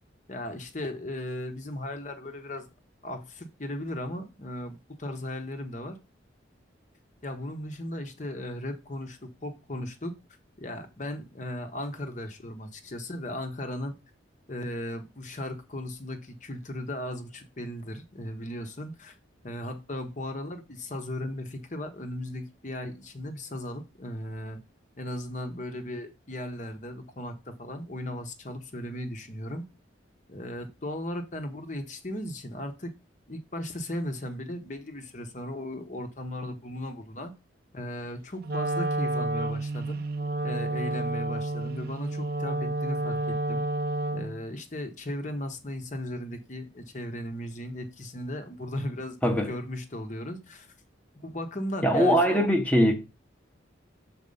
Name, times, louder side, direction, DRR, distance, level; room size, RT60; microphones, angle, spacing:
voice 1, 0.3-2.7 3.0-6.0 7.2-10.1 10.6-13.9 14.5-19.2 19.4-24.6 25.0-29.6 30.3-32.9 33.3-37.3 37.7-40.0 40.4-43.6 44.1-49.2 49.5-50.7 51.2-52.5, left 1 dB, 40° left, 1.0 m, -36 dB
Wind instrument woodwind instrument, 38.4-44.5, right 2 dB, 50° right, 0.5 m, -30 dB
voice 2, 51.8-52.9, equal, 5° left, 1.0 m, -21 dB
6.5 x 4.5 x 5.4 m
head